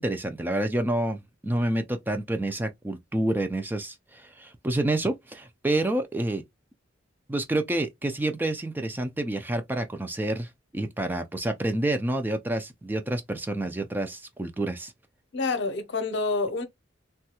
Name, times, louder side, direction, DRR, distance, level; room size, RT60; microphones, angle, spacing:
voice 1, 0.0-6.4 7.3-14.9, right 1 dB, 10° right, 0.3 m, -28 dB
voice 2, 15.3-16.6, left 3 dB, 65° left, 0.7 m, -27 dB
3.1 x 2.3 x 2.8 m
head